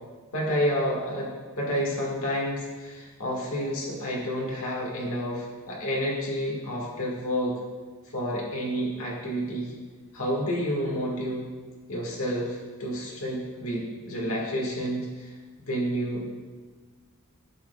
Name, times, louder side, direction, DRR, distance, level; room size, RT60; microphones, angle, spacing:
voice 1, 0.3-1.3 1.6-7.5 8.1-9.7 10.1-11.5 11.9-15.3 15.6-16.3, equal, 65° left, -3 dB, 1.7 m, -29 dB
11.5 x 6.0 x 2.3 m, 1.4 s
head